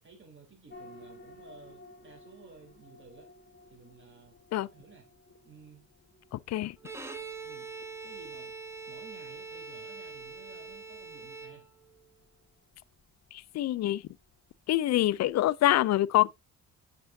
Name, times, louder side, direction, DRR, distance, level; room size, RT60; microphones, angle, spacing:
voice 1, 0.0-3.3 3.7-4.4 4.6-5.1 5.4-5.8 6.8-7.1 7.4-7.7 8.0-8.5 8.9-11.7, right 4 dB, 40° right, 3.6 m, -54 dB
sound 1, 0.7-15.5, left 2 dB, 40° left, 2.0 m, -57 dB
Bowed string instrument, 6.8-12.0, right 4 dB, 10° right, 1.1 m, -43 dB
voice 2, 13.3-14.0 14.7-16.3, left 14 dB, 60° left, 0.4 m, -25 dB
8.7 x 5.8 x 2.6 m
cardioid pair, 90°, 30 cm